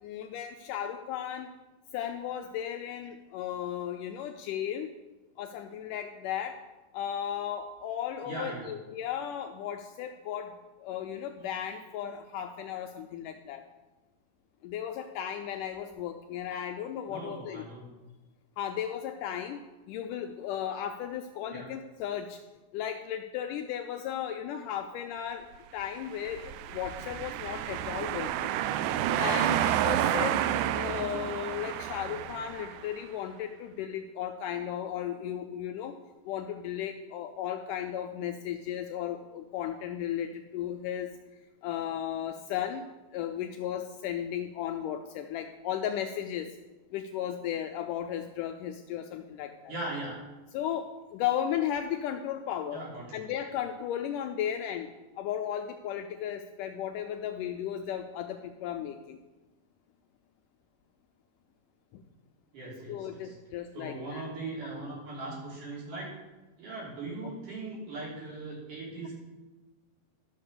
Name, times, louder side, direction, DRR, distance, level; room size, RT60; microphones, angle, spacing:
voice 1, 0.0-1.5 1.9-4.9 5.4-6.6 6.9-10.5 10.8-13.6 14.6-17.6 18.6-19.6 19.9-22.4 22.7-25.5 25.7-28.6 29.2-30.4 30.7-36.0 36.3-41.1 41.6-46.5 46.9-49.7 50.5-52.8 53.1-54.9 55.2-59.2 61.9-62.0 62.9-64.3, left 10 dB, 80° left, 6 dB, 2.0 m, -35 dB
voice 2, 8.2-8.7 17.1-17.9 21.5-21.7 32.1-32.2 49.7-50.1 52.7-53.2 62.5-63.4 63.7-66.1 66.6-69.1, right 2 dB, 60° right, -5 dB, 5.0 m, -39 dB
sound 1, 26.2-32.9, right 11 dB, 85° right, 1.8 m, -30 dB
12.5 x 6.1 x 6.7 m, 1.1 s
omnidirectional pair, 4.1 m